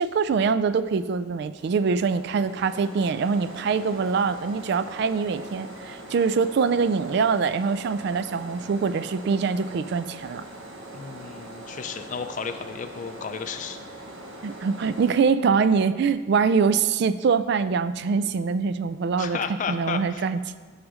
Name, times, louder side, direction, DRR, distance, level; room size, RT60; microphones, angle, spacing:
voice 1, 0.0-10.4 14.4-19.4 19.7-20.6, right 5 dB, 55° right, 13 dB, 0.3 m, -24 dB
sound 1, 1.6-15.2, right 1 dB, 75° right, 1.1 m, -42 dB
voice 2, 10.9-13.8 19.2-20.2, left 6 dB, 40° left, 8 dB, 0.4 m, -33 dB
6.3 x 4.9 x 6.2 m, 1.4 s
head